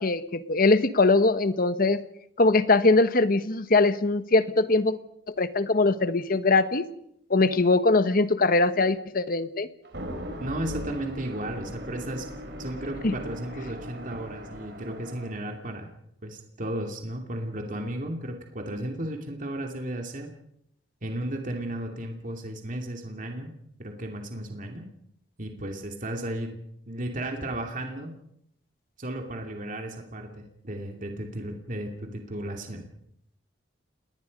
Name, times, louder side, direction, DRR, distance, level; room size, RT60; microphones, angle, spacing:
voice 1, 0.0-2.0 2.4-5.0 5.4-6.9 7.3-9.7 13.0-13.1, left 3 dB, 50° left, 12 dB, 1.2 m, -22 dB
sound 1, 9.8-15.5, equal, 60° right, 4.0 m, -39 dB
voice 2, 10.4-12.3 12.6-15.9 16.2-20.3 21.0-23.5 23.8-24.8 25.4-26.6 26.9-28.1 29.0-32.9, right 1 dB, 45° right, 3 dB, 2.6 m, -34 dB
29.5 x 20.0 x 5.3 m, 0.74 s
head